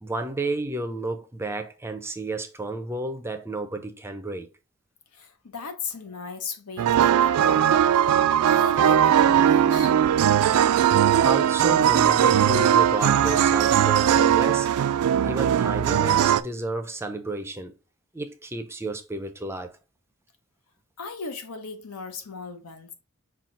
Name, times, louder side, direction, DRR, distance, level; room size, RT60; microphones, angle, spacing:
voice 1, 0.0-4.5 6.2-6.3 10.8-14.7 15.2-17.7 18.1-19.8, right 2 dB, 10° right, 0.4 m, -32 dB
voice 2, 5.1-7.9 8.5-10.0 21.0-22.9, left 3 dB, 85° left, 0.9 m, -36 dB
sound 1, 6.8-16.4, right 9 dB, 80° right, 0.3 m, -19 dB
5.7 x 2.3 x 3.8 m
head